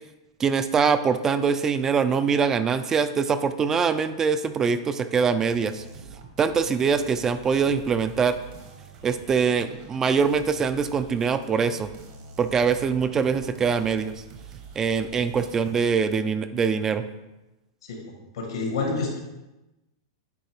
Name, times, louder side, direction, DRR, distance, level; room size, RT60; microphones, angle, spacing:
voice 1, 0.4-5.8 6.4-8.4 9.0-11.9 12.4-14.1 14.8-17.0, right 6 dB, 20° right, 11 dB, 0.3 m, -23 dB
sound 1, 5.4-16.0, right 5 dB, 55° right, 1.1 m, -46 dB
voice 2, 18.3-19.2, left 3 dB, 85° left, 1 dB, 1.7 m, -28 dB
9.3 x 3.5 x 3.4 m, 1.0 s
hypercardioid pair, 135°, 2 cm